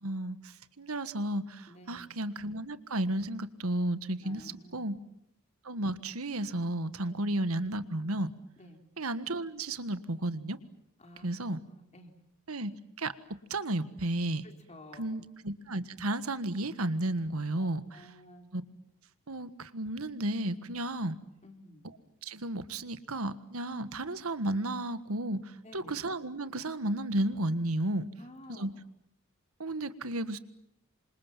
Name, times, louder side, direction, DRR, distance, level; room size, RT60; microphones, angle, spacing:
voice 1, 0.0-5.0 5.6-8.3 9.0-10.6 11.2-11.6 12.5-13.1 13.5-14.4 15.0-18.1 18.5-18.6 19.3-21.2 22.2-28.1 28.5-28.7 29.6-30.4, right 1 dB, 75° right, 13 dB, 1.6 m, -33 dB
voice 2, 1.7-2.1 4.2-4.9 7.1-7.2 8.6-8.8 11.0-11.3 11.7-12.1 14.4-15.2 17.6-18.5 21.4-21.8 25.6-26.0 28.2-28.7, left 1 dB, 30° left, 5 dB, 3.9 m, -52 dB
27.5 x 26.0 x 7.4 m, 0.79 s
head